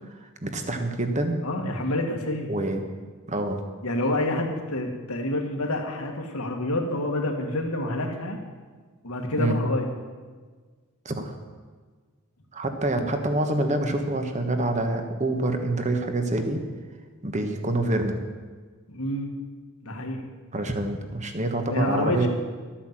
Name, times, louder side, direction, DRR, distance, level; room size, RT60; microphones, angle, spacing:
voice 1, 0.2-1.4 2.5-2.8 3.3-3.6 9.4-9.6 11.0-11.3 12.5-16.6 17.2-18.2 20.5-22.3, right 2 dB, 30° right, 6 dB, 1.3 m, -26 dB
voice 2, 1.4-2.5 3.8-8.4 9.0-9.9 18.9-19.3 19.8-20.2 21.7-22.3, left 1 dB, 80° left, 2 dB, 2.0 m, -28 dB
12.5 x 8.8 x 7.6 m, 1.5 s
head